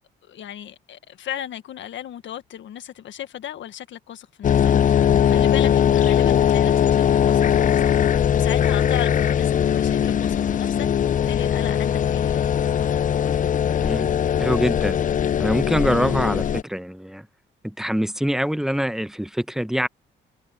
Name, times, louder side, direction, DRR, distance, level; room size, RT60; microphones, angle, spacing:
voice 1, 0.3-7.8 8.1-12.4, left 11 dB, 70° left, 1.6 m, -35 dB
sound 1, 4.4-16.6, left 9 dB, 40° left, 0.5 m, -20 dB
voice 2, 13.8-14.1 14.4-15.0 15.4-17.3 17.6-19.9, equal, ahead, 0.9 m, -24 dB
cardioid pair, 90°, 20 cm